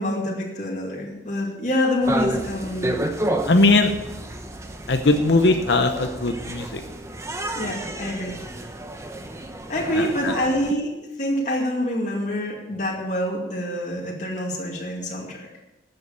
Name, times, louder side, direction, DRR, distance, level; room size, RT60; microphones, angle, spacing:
voice 1, 0.0-3.0 7.6-8.4 9.7-15.5, left 1 dB, 45° left, -3 dB, 2.4 m, -26 dB
sound 1, 2.0-10.7, right 1 dB, 15° right, 0.9 m, -31 dB
voice 2, 3.5-3.9 4.9-6.8 10.0-10.3, left 2 dB, 75° left, 6 dB, 0.9 m, -19 dB
13.0 x 8.0 x 6.9 m, 1.0 s
head